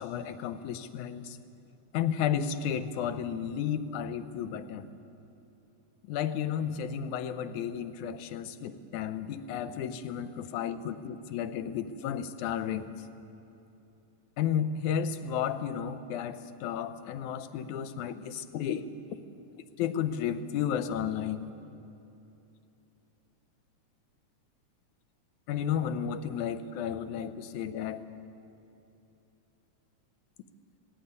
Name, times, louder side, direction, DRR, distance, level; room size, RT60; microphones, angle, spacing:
voice 1, 0.0-1.4 1.9-4.9 6.0-12.9 14.4-18.9 19.8-21.5 25.5-28.0, left 8 dB, 85° left, 11 dB, 2.2 m, -33 dB
19.0 x 16.0 x 9.5 m, 2.9 s
omnidirectional pair, 3.4 m